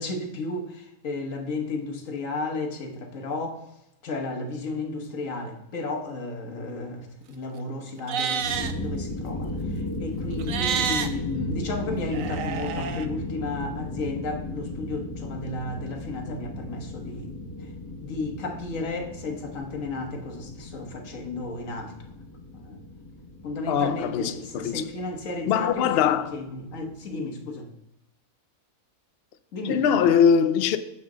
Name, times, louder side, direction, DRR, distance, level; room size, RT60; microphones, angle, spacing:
voice 1, 0.0-3.6 4.0-17.4 18.0-21.9 22.5-22.8 23.4-27.7 29.5-29.9, left 2 dB, 55° left, 1.6 m, -33 dB
Livestock farm animals working animals, 8.0-8.7 10.4-11.1 12.1-13.1, right 7 dB, 65° right, 1.0 m, -28 dB
sound 1, 8.3-27.1, left 1 dB, 20° left, 0.6 m, -36 dB
voice 2, 23.7-24.8 25.5-26.3 29.7-30.8, left 7 dB, 85° left, 0.5 m, -22 dB
9.2 x 6.6 x 3.8 m
omnidirectional pair, 1.7 m